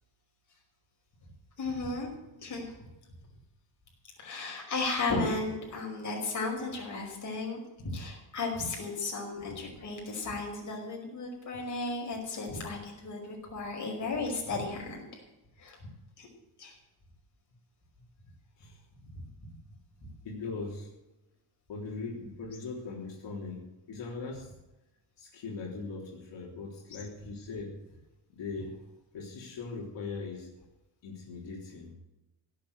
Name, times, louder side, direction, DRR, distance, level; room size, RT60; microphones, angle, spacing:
voice 1, 1.6-2.1 2.4-2.9 4.2-15.2 15.6-15.9 16.2-16.3 16.6-16.8 19.1-19.5 26.9-27.0, left 3 dB, 45° left, -1 dB, 5.4 m, -35 dB
voice 2, 20.2-20.9 21.7-24.5 25.2-27.8 28.3-28.8 29.1-30.5 31.0-31.9, left 4 dB, 80° left, -2 dB, 3.6 m, -40 dB
16.5 x 8.5 x 8.2 m, 0.98 s
wide cardioid pair, 175°, 43 cm